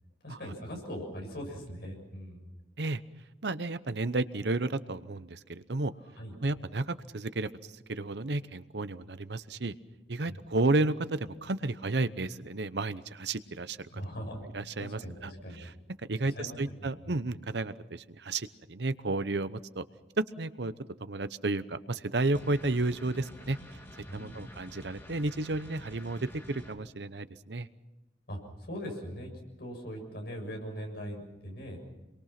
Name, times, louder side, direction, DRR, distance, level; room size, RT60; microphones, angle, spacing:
voice 1, 0.2-2.5 6.2-6.3 10.3-10.4 13.9-14.5 14.8-15.7 16.2-16.7 17.0-17.1 24.1-24.5 28.3-29.3 29.6-31.8, equal, 60° left, 2 dB, 7.0 m, -40 dB
voice 2, 3.4-5.9 6.4-7.5 7.9-9.7 10.1-14.0 14.5-15.3 15.6-15.7 16.1-19.8 20.2-20.7 21.0-23.6 24.1-27.7, right 2 dB, 70° right, 13 dB, 0.9 m, -32 dB
sound 1, 22.3-26.7, equal, 15° left, 2.8 m, -49 dB
27.5 x 22.5 x 6.0 m, 1.0 s
head